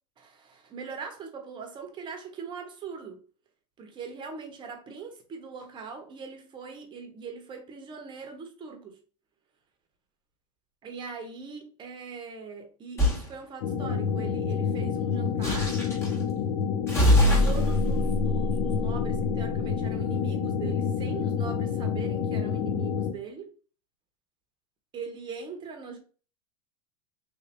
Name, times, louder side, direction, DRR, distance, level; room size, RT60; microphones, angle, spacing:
voice 1, 0.2-3.2 3.8-9.0 10.8-15.8 17.2-23.5 24.9-26.0, right 5 dB, 25° right, 1.0 m, -41 dB
sound 1, 13.0-13.3 15.4-16.1 16.9-19.5, equal, 15° left, 1.2 m, -24 dB
sound 2, 13.6-23.1, left 7 dB, 65° left, 0.8 m, -28 dB
3.3 x 2.7 x 3.3 m
supercardioid pair, 125°, 18 cm